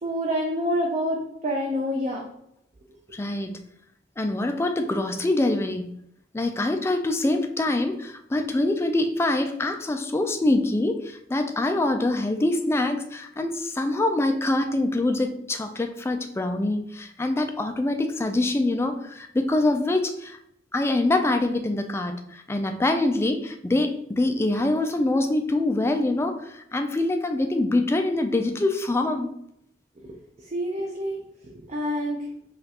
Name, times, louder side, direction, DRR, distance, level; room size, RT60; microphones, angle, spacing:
voice 1, 0.0-2.2 3.1-3.2 30.5-31.2 31.7-32.2, equal, 40° right, -2 dB, 0.6 m, -27 dB
voice 2, 3.1-3.6 4.2-5.9 6.3-20.4 20.7-29.3, left 2 dB, 15° left, 6 dB, 0.3 m, -24 dB
5.1 x 2.4 x 2.8 m, 0.75 s
head